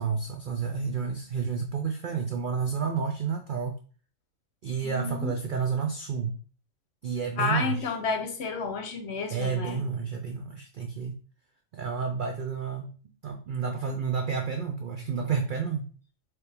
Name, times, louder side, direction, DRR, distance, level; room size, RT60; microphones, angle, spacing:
voice 1, 0.0-3.8 4.6-6.4 7.0-7.9 9.3-11.2 11.7-13.0 13.2-15.9, right 6 dB, 70° right, 4 dB, 0.4 m, -30 dB
voice 2, 4.8-5.3 7.4-9.8, left 4 dB, 60° left, 5 dB, 0.9 m, -31 dB
4.5 x 3.1 x 3.3 m, 0.41 s
omnidirectional pair, 1.4 m